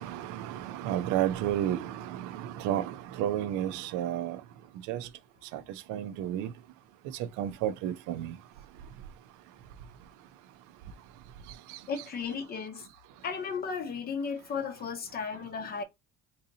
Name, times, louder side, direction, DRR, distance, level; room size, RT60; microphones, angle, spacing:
voice 1, 0.0-4.4 4.9-5.1 5.5-5.6 5.9-6.5 7.4-8.3, right 11 dB, 80° right, 0.6 m, -31 dB
voice 2, 11.9-12.9 13.2-15.8, left 5 dB, 30° left, 0.7 m, -35 dB
3.8 x 2.8 x 2.6 m
cardioid pair, 170°, 31 cm